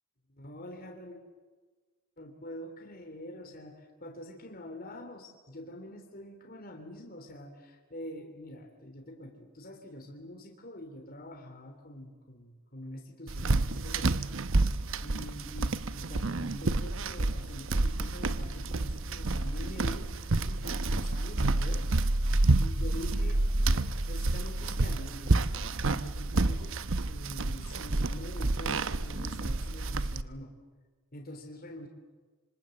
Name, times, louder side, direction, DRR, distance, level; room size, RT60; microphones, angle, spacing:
voice 1, 0.3-1.2 2.2-14.3 15.0-20.1 20.4-22.0 22.6-23.5 24.1-25.4 26.0-26.8 27.1-30.5 31.1-31.9, left 1 dB, 40° left, 3 dB, 3.4 m, -45 dB
sound 1, 13.3-30.2, right 2 dB, 60° right, 0.9 m, -29 dB
26.5 x 25.5 x 7.9 m, 1.4 s
head